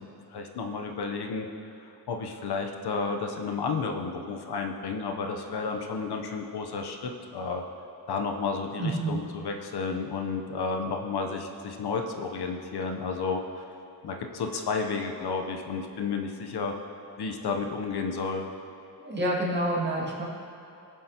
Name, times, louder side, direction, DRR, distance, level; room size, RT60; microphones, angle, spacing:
voice 1, 0.0-1.5 1.8-7.6 8.1-13.7 14.0-16.7 17.2-18.5, left 4 dB, 75° left, 3 dB, 0.9 m, -32 dB
voice 2, 8.8-9.2 19.0-20.2, right 1 dB, 25° right, -5 dB, 2.3 m, -28 dB
17.0 x 7.3 x 2.9 m, 2.9 s
wide cardioid pair, 110°, 39 cm